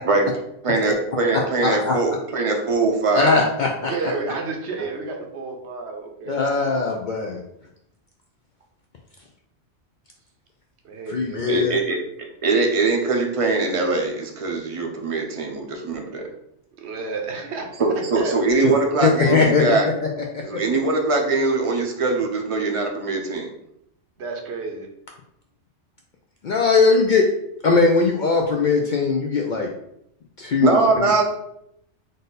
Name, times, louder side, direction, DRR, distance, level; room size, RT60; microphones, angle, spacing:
voice 1, 0.6-3.3 11.5-12.0 12.4-16.3 17.8-19.9 20.4-23.5 30.6-31.2, right 3 dB, 40° right, 2 dB, 0.5 m, -22 dB
voice 2, 1.6-1.9 3.1-3.9 6.3-7.4 11.1-11.8 18.6-18.7 19.0-19.6 26.4-27.3 27.6-29.7 30.4-31.1, left 4 dB, 60° left, 1 dB, 0.5 m, -20 dB
voice 3, 3.9-7.0 10.8-11.7 16.8-17.7 18.1-18.4 24.2-24.9, right 4 dB, 65° right, 2 dB, 1.0 m, -31 dB
3.9 x 2.6 x 3.9 m, 0.77 s
omnidirectional pair, 1.2 m